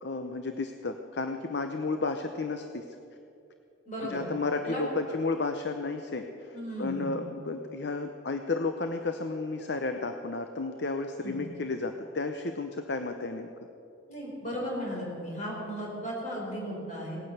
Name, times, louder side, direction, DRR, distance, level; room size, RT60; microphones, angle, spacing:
voice 1, 0.0-2.8 4.0-13.5, left 3 dB, 60° left, 6 dB, 0.7 m, -32 dB
voice 2, 3.9-4.2 4.6-5.1 6.5-7.2 11.2-11.4 14.1-17.2, equal, 40° left, -3 dB, 4.8 m, -36 dB
18.5 x 9.7 x 8.0 m, 2.7 s
head